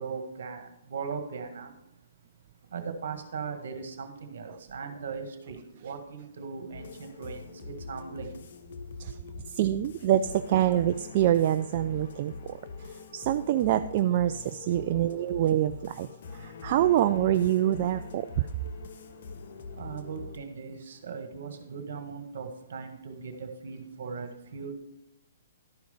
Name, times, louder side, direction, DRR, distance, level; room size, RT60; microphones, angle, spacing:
voice 1, 0.0-1.7 2.6-8.4 10.7-10.8 19.7-24.7, right 5 dB, 65° right, 7 dB, 1.5 m, -39 dB
sound 1, 6.7-20.4, left 4 dB, 60° left, 0.8 m, -43 dB
voice 2, 9.5-12.3 13.1-16.1 16.4-18.3, right 12 dB, 45° right, 10 dB, 0.3 m, -25 dB
11.5 x 4.9 x 5.4 m, 0.82 s
hypercardioid pair, 130°, 0 cm